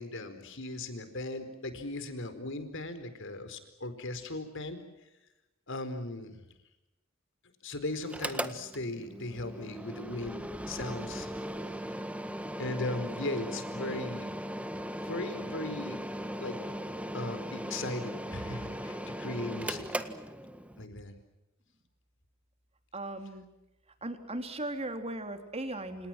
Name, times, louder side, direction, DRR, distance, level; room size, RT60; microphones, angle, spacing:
voice 1, 0.0-4.8 5.7-6.5 7.6-11.3 12.6-14.3 15.0-16.0 16.4-16.6 17.1-19.8 20.8-21.1, left 2 dB, 60° left, 10 dB, 4.5 m, -38 dB
Mechanical fan, 8.0-20.9, equal, 5° right, 1.5 m, -38 dB
voice 2, 22.9-23.4 24.0-26.1, right 1 dB, 30° right, 7 dB, 3.6 m, -37 dB
29.5 x 28.5 x 6.1 m, 0.95 s
head